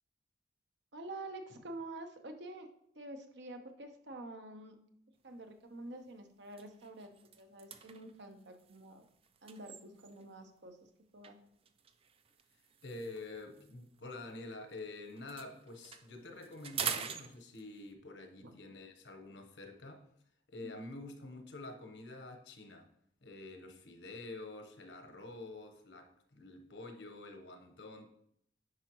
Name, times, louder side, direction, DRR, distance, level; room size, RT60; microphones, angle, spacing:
voice 1, 0.9-2.7 2.9-4.8 5.2-9.1 9.4-10.8 11.1-11.4 18.4-18.5 20.6-20.8, right 2 dB, 75° right, 5 dB, 0.9 m, -48 dB
sound 1, 5.3-5.5 6.0-6.1 6.4-10.4 11.2-14.8 15.1-17.9, right 7 dB, 35° right, 0.4 m, -45 dB
voice 2, 12.8-20.0 20.5-22.9 23.2-28.1, left 2 dB, 85° left, 6 dB, 1.0 m, -48 dB
9.8 x 5.0 x 3.1 m, 0.70 s
head